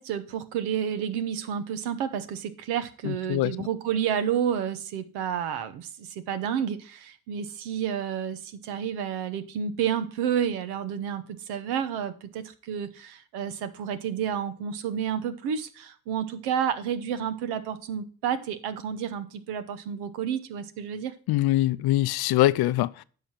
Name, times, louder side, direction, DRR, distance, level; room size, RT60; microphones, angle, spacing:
voice 1, 0.0-21.1, right 8 dB, 85° right, 0.9 m, -30 dB
voice 2, 3.0-3.7 21.3-23.0, left 16 dB, 70° left, 0.6 m, -23 dB
10.0 x 5.8 x 4.4 m
supercardioid pair, 50°, 39 cm